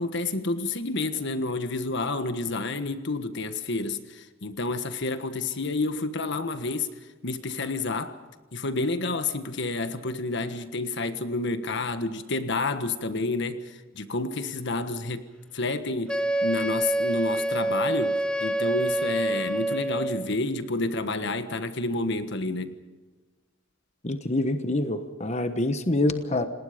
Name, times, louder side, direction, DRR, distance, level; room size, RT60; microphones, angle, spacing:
voice 1, 0.0-6.9 7.2-8.2 8.5-15.2 15.5-22.8, left 3 dB, 60° left, 1.4 m, -29 dB
Wind instrument woodwind instrument, 16.1-20.2, right 1 dB, 5° left, 1.4 m, -26 dB
voice 2, 24.0-26.5, left 2 dB, 35° left, 1.2 m, -26 dB
27.5 x 20.0 x 5.2 m
head